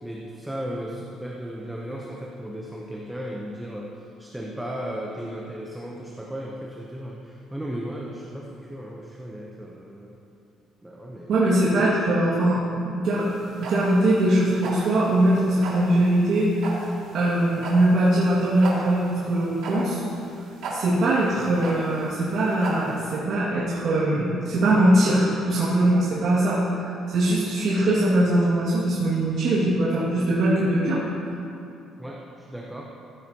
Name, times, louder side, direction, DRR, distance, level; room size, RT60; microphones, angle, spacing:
voice 1, 0.0-3.9 4.2-10.1 10.8-11.4 11.7-11.9 32.0-32.9, equal, 5° right, -2 dB, 0.7 m, -35 dB
voice 2, 11.3-13.3 13.6-16.7 17.1-20.0 20.7-31.0, right 1 dB, 55° right, -9 dB, 2.0 m, -21 dB
sound 1, 13.2-23.2, right 2 dB, 80° right, 2.3 m, -36 dB
14.0 x 9.6 x 2.9 m, 2.6 s
cardioid pair, 165°, 0 cm